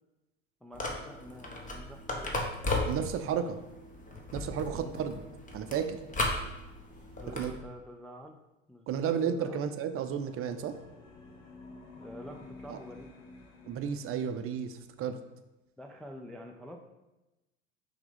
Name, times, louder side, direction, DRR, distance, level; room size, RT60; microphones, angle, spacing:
voice 1, 0.6-2.5 4.7-5.0 7.2-8.4 8.7-9.6 11.9-13.1 15.8-16.9, equal, ahead, 2 dB, 0.3 m, -47 dB
sound 1, 0.7-7.6, left 2 dB, 20° left, 1.2 m, -36 dB
voice 2, 2.9-3.6 4.3-5.2 5.5-6.0 7.3-7.5 8.9-10.8 12.7-12.8 13.6-15.2, right 7 dB, 35° right, 9 dB, 0.6 m, -32 dB
sound 2, 10.2-14.9, left 2 dB, 65° left, 1.6 m, -51 dB
5.9 x 3.6 x 5.0 m, 1.0 s
hypercardioid pair, 80°, 38 cm